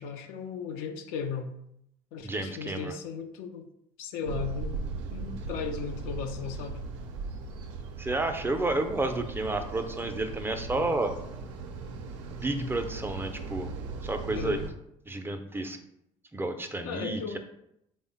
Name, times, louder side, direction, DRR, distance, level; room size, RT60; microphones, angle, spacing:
voice 1, 0.0-1.6 2.1-3.7 4.0-6.9 10.7-10.9 14.3-14.6 16.8-17.4, left 6 dB, 70° left, 6 dB, 0.4 m, -36 dB
voice 2, 2.2-2.9 8.0-11.1 12.4-13.7 14.0-14.6 15.1-15.8 16.3-17.4, right 2 dB, 15° right, 6 dB, 0.4 m, -31 dB
sound 1, 4.2-14.7, right 4 dB, 80° right, 0.4 m, -38 dB
3.4 x 2.1 x 3.9 m, 0.78 s
hypercardioid pair, 60°, 15 cm